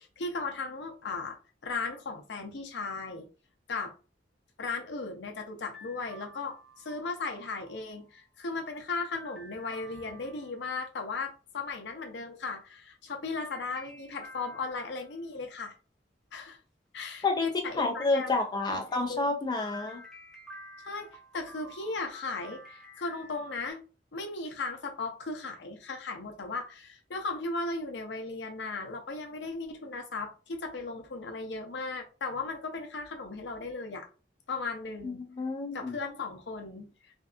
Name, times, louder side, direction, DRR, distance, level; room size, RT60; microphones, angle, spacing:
voice 1, 0.0-3.3 3.7-3.9 4.6-15.7 16.3-16.6 16.9-18.4 18.7-19.3 20.8-21.1 21.3-23.8 24.1-34.1 34.5-35.2 35.7-37.1, left 3 dB, 85° left, 0.6 m, -36 dB
sound 1, 5.7-8.2 9.2-10.7 13.5-15.2 19.6-23.7, equal, ahead, 0.9 m, -50 dB
voice 2, 17.2-20.0 35.0-36.0, left 3 dB, 25° left, 0.4 m, -29 dB
2.6 x 2.3 x 2.4 m
head